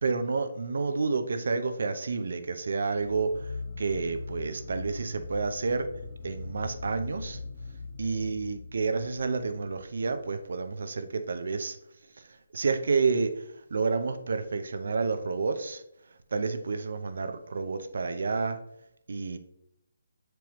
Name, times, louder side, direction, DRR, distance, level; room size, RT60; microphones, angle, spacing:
voice 1, 0.0-5.9 6.2-7.4 8.0-11.8 12.2-15.8 16.3-18.6 19.1-19.4, right 4 dB, 65° right, 8 dB, 0.7 m, -30 dB
sound 1, 2.9-10.2, left 3 dB, 25° left, 1.0 m, -41 dB
7.0 x 4.5 x 3.1 m, 0.80 s
figure-of-eight pair, 155°, 0 cm